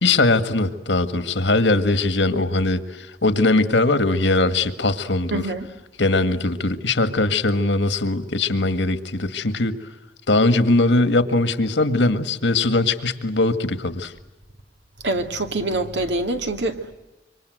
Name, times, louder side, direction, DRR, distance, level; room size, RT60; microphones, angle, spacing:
voice 1, 0.0-5.4 6.0-9.8 10.3-14.1, left 2 dB, 85° left, 1.9 m, -20 dB
voice 2, 5.3-5.7 15.0-16.9, right 2 dB, 80° right, 2.5 m, -25 dB
26.5 x 24.5 x 8.0 m
head